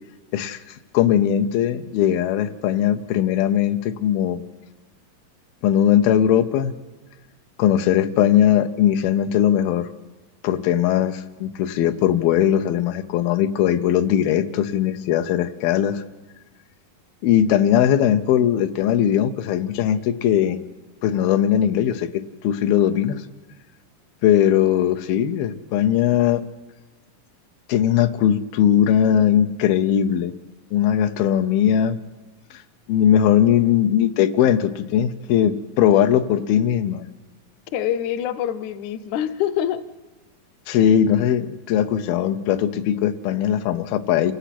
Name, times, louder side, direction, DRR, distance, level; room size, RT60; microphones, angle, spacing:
voice 1, 0.9-4.4 5.6-6.7 7.6-9.9 10.4-16.0 17.2-20.6 21.0-22.1 22.4-23.2 24.2-26.4 27.7-30.3 30.7-32.0 32.9-37.0 40.7-44.3, left 10 dB, 85° left, 9 dB, 2.7 m, -19 dB
voice 2, 37.7-39.8, left 10 dB, 70° left, 11 dB, 1.9 m, -25 dB
28.0 x 16.5 x 6.0 m, 1.2 s
omnidirectional pair, 4.1 m